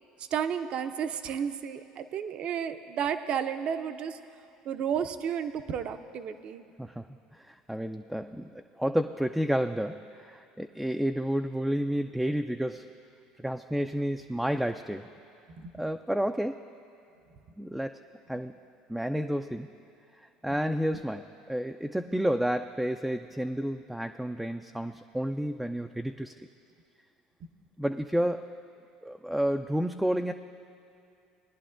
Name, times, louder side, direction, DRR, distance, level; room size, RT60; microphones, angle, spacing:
voice 1, 0.2-4.2 4.7-6.6 15.6-15.7, right 8 dB, 50° right, 10 dB, 0.6 m, -32 dB
voice 2, 6.8-12.9 13.4-15.1 15.7-16.6 17.6-18.0 18.3-18.5 18.9-19.7 20.2-26.5 27.8-28.5 29.0-30.3, equal, 5° right, 6 dB, 0.3 m, -31 dB
19.5 x 10.5 x 2.5 m, 2.6 s
hypercardioid pair, 85°, 2 cm